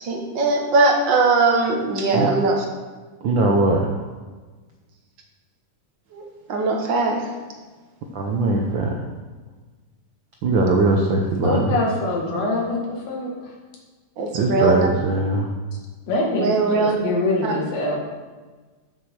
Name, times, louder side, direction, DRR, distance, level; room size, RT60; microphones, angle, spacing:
voice 1, 0.0-2.6 6.1-6.2 6.5-7.2 14.2-14.9 16.4-16.9, right 3 dB, 50° right, 1 dB, 1.5 m, -20 dB
voice 2, 3.2-3.8 8.1-8.9 10.4-11.7 14.3-15.5, right 2 dB, 85° right, 0 dB, 1.0 m, -20 dB
voice 3, 11.4-13.3 16.1-18.0, left 2 dB, 65° left, -2 dB, 2.9 m, -24 dB
7.6 x 6.6 x 6.3 m, 1.3 s
omnidirectional pair, 3.4 m